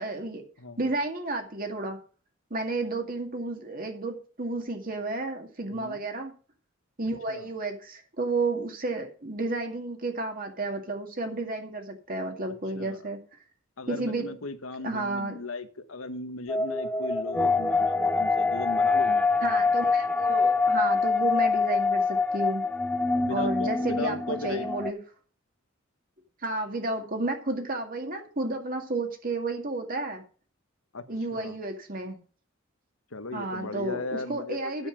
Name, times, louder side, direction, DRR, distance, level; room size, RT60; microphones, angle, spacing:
voice 1, 0.0-0.4 0.8-2.0 2.5-6.3 7.0-13.2 13.9-14.3 14.8-15.3 19.4-22.7 23.3-25.0 26.4-30.2 31.1-32.2 33.3-34.0 34.3-34.9, right 2 dB, 45° right, 4 dB, 2.1 m, -31 dB
voice 2, 0.6-0.9 5.6-6.0 7.3-7.5 12.7-13.1 13.8-19.3 23.2-24.7 30.9-31.0 31.3-31.6 33.1-34.9, left 3 dB, 85° left, 10 dB, 1.2 m, -37 dB
sound 1, 16.5-24.9, left 4 dB, 5° left, 0.5 m, -25 dB
9.6 x 7.2 x 6.0 m, 0.39 s
head